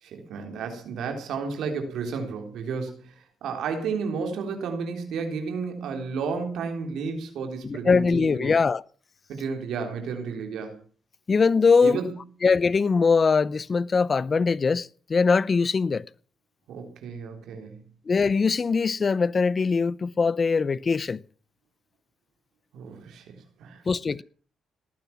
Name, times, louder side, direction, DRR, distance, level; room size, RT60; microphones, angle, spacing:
voice 1, 0.0-8.5 9.3-10.8 11.8-12.1 16.7-17.8 22.7-23.8, right 5 dB, 75° right, 3.6 m, -32 dB
voice 2, 7.6-8.8 11.3-12.0 12.4-16.0 18.1-21.2 23.9-24.2, left 5 dB, 35° left, 0.6 m, -22 dB
19.0 x 9.4 x 7.2 m
cardioid pair, 90°, 0 cm